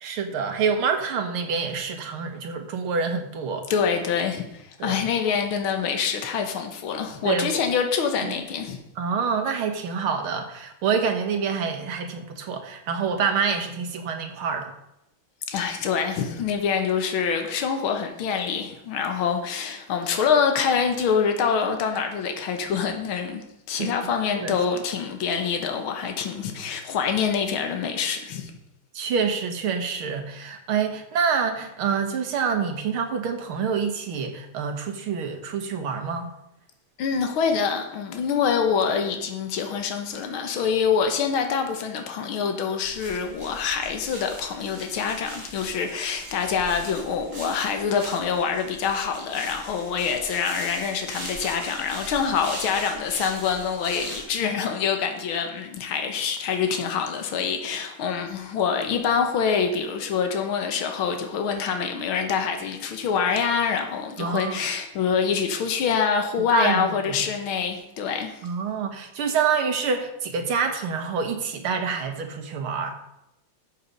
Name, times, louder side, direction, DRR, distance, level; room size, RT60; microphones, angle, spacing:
voice 1, 0.0-3.7 4.8-5.0 7.2-7.6 9.0-14.7 23.8-23.9 24.4-24.6 28.9-36.3 64.2-64.6 66.5-67.2 68.4-72.9, right 6 dB, 90° right, 6 dB, 2.2 m, -27 dB
voice 2, 3.7-8.8 15.5-28.5 37.0-68.3, left 6 dB, 80° left, 5 dB, 2.0 m, -25 dB
sound 1, 42.8-54.2, right 1 dB, 35° right, 4.4 m, -40 dB
12.5 x 7.3 x 5.3 m, 0.84 s
omnidirectional pair, 2.3 m